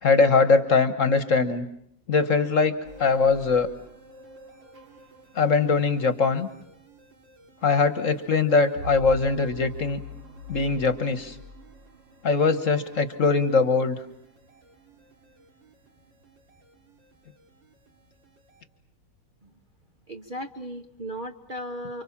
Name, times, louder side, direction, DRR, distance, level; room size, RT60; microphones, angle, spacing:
voice 1, 0.0-1.7 2.1-3.7 5.3-6.5 7.6-10.0 10.5-11.3 12.2-14.0, left 4 dB, 50° left, 11 dB, 1.5 m, -21 dB
sound 1, 2.8-18.6, equal, 85° right, 3.7 m, -46 dB
voice 2, 20.1-22.0, equal, 30° right, 3 dB, 1.1 m, -36 dB
29.5 x 25.0 x 7.3 m, 0.73 s
omnidirectional pair, 2.0 m